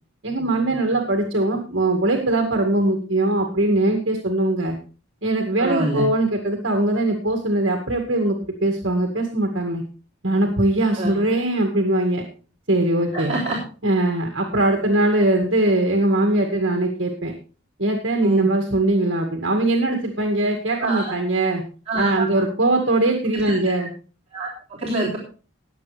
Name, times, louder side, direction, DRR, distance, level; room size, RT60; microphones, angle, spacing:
voice 1, 0.2-4.8 5.2-9.8 10.2-12.2 12.7-13.3 13.8-17.3 17.8-21.6 22.0-23.9, right 2 dB, 60° right, 3 dB, 2.0 m, -21 dB
voice 2, 5.6-6.0 11.0-11.2 13.1-13.6 18.2-18.5 20.8-21.1 21.9-22.3 23.3-23.6 24.3-25.2, right 2 dB, 30° right, -5 dB, 3.6 m, -25 dB
20.0 x 7.6 x 3.4 m, 0.36 s
head